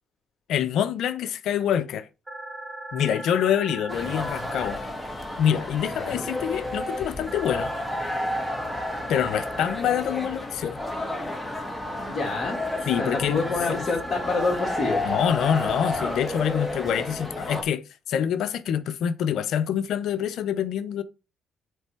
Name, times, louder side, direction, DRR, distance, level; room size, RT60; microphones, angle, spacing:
voice 1, 0.5-2.1 2.9-4.9 5.4-7.7 9.1-10.8 12.9-13.9 15.0-17.8 18.1-21.0, left 9 dB, 75° left, 0.7 m, -26 dB
sound 1, 2.3-4.8 7.3-9.8 12.3-14.8, right 1 dB, 10° right, 2.0 m, -38 dB
sound 2, 3.9-17.6, left 1 dB, 5° left, 1.7 m, -31 dB
voice 2, 5.9-6.2 12.0-12.6 13.0-15.0, left 3 dB, 35° left, 2.5 m, -27 dB
8.0 x 3.4 x 4.5 m
cardioid pair, 90°, 0 cm